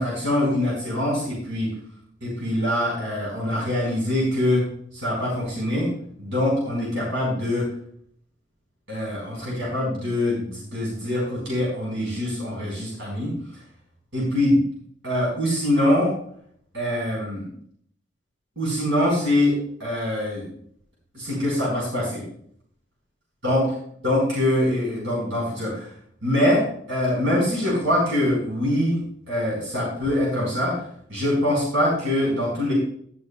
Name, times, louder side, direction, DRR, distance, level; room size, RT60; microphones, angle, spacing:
voice 1, 0.0-1.7 2.2-4.6 4.9-5.9 6.2-7.7 8.9-13.3 14.1-14.6 15.0-16.1 16.7-17.4 18.6-20.4 21.1-22.2 23.4-23.7 24.0-25.9 26.2-29.0 29.3-30.8 31.1-32.7, left 1 dB, 65° right, -4 dB, 4.8 m, -23 dB
12.0 x 11.0 x 2.4 m, 0.64 s
head